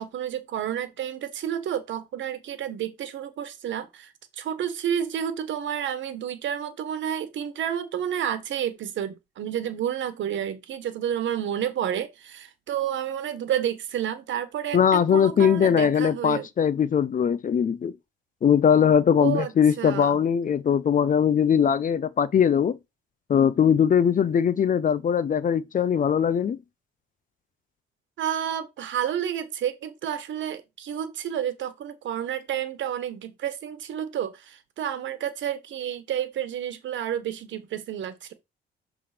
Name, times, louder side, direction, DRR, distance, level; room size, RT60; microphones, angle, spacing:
voice 1, 0.0-16.5 19.2-20.2 28.2-38.3, right 9 dB, 70° right, 1.3 m, -30 dB
voice 2, 14.7-17.9 18.4-22.8 23.3-26.6, left 8 dB, 40° left, 0.6 m, -21 dB
6.9 x 3.5 x 4.9 m
cardioid pair, 90°, 20 cm